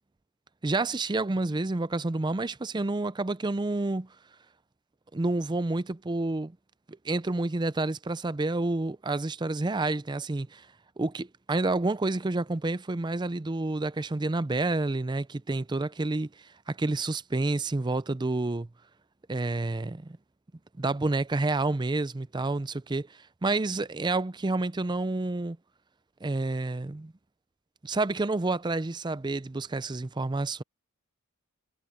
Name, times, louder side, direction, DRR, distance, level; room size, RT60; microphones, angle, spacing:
voice 1, 0.6-4.1 5.1-6.6 7.0-10.7 11.0-18.7 19.3-20.2 20.8-25.6 26.2-27.1 27.8-30.6, right 2 dB, 20° right, 0.5 m, -29 dB
head